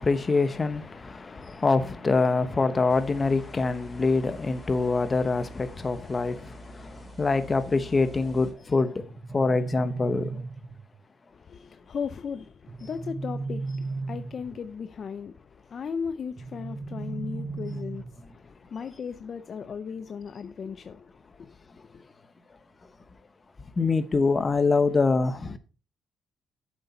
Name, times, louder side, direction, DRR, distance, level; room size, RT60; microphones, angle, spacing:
voice 1, 0.0-9.0 9.3-10.4 23.8-25.6, left 3 dB, 25° left, 1.0 m, -25 dB
sound 1, 2.9-8.5, right 1 dB, ahead, 4.4 m, -47 dB
sound 2, 9.0-11.0 12.7-14.7 16.4-18.4, right 3 dB, 35° right, 0.8 m, -36 dB
voice 2, 11.3-22.0, left 6 dB, 45° left, 0.5 m, -37 dB
7.8 x 7.0 x 4.3 m
cardioid pair, 115°, 0 cm